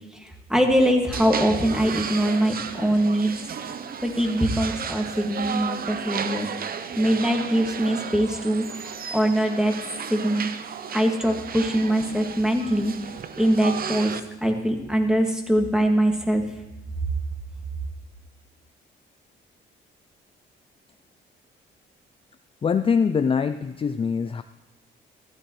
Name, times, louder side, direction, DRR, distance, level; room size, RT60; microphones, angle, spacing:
voice 1, 0.2-3.3 4.0-6.5 7.0-8.6 9.1-9.7 10.1-10.5 10.9-12.9 13.4-14.1 14.4-16.4, right 1 dB, 5° right, 2 dB, 2.1 m, -22 dB
sound 1, 1.1-14.2, right 7 dB, 50° right, 0.8 m, -34 dB
voice 2, 22.6-24.4, left 6 dB, 30° left, 9 dB, 0.4 m, -23 dB
15.0 x 13.0 x 3.2 m, 1.0 s
cardioid pair, 90°, 20 cm